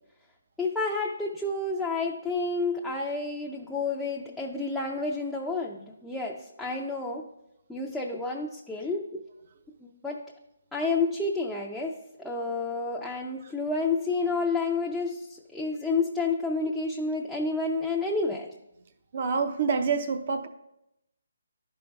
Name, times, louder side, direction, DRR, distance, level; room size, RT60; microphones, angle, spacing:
voice 1, 0.6-7.2 7.7-9.2 9.8-10.2 10.7-11.9 12.2-18.5, left 3 dB, 5° left, -3 dB, 0.5 m, -30 dB
voice 2, 19.1-20.5, right 5 dB, 45° right, 7 dB, 0.5 m, -27 dB
11.5 x 5.2 x 2.3 m, 0.86 s
hypercardioid pair, 155°, 0 cm